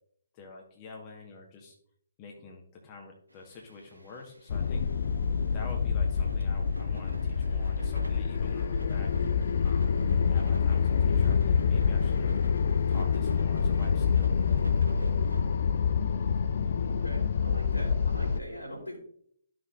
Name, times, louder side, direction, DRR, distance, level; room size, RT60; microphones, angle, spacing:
voice 1, 0.3-1.8 2.2-4.8 5.5-9.1 9.6-10.0 10.3-12.4 12.9-14.6, left 3 dB, 25° left, 0 dB, 1.3 m, -47 dB
sound 1, 3.3-15.4, right 1 dB, 85° right, 0.9 m, -45 dB
sound 2, 4.5-18.4, left 6 dB, 50° left, 0.3 m, -26 dB
voice 2, 16.9-19.0, equal, 85° left, -1 dB, 3.5 m, -41 dB
13.0 x 6.1 x 2.4 m, 0.63 s
figure-of-eight pair, 135°, 0 cm